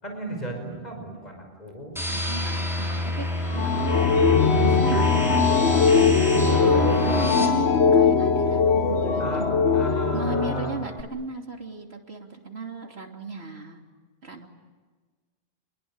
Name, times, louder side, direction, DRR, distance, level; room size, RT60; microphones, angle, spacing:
voice 1, 0.0-2.0 6.5-6.9 9.2-10.8, equal, 40° left, 3 dB, 5.6 m, -34 dB
sound 1, 2.0-7.5, left 1 dB, ahead, 6.2 m, -29 dB
voice 2, 2.1-5.9 6.5-9.6 10.1-13.8 14.2-14.5, right 2 dB, 85° right, 3 dB, 3.2 m, -35 dB
sound 2, 3.5-11.0, left 5 dB, 85° left, 1.6 m, -21 dB
29.0 x 22.0 x 8.9 m, 1.4 s
omnidirectional pair, 1.1 m